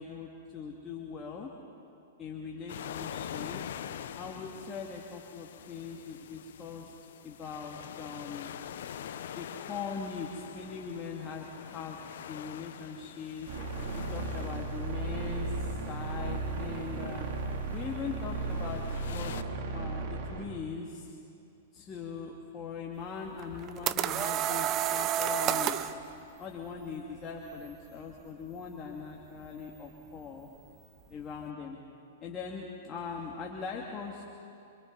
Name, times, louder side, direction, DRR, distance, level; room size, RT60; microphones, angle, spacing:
voice 1, 0.0-1.5 2.2-3.6 4.2-6.9 7.2-8.5 9.4-12.0 12.3-13.5 14.1-17.3 17.7-19.3 19.7-21.2 21.7-26.0 26.4-30.5 31.1-31.8 32.2-34.2, left 5 dB, 25° left, -1 dB, 2.4 m, -41 dB
sound 1, 2.7-19.4, left 9 dB, 70° left, 1.0 m, -45 dB
sound 2, 13.5-20.5, right 3 dB, 55° right, 3.1 m, -35 dB
sound 3, 23.4-26.0, right 11 dB, 35° right, 0.9 m, -29 dB
29.5 x 26.0 x 4.2 m, 2.6 s
hypercardioid pair, 115°, 0 cm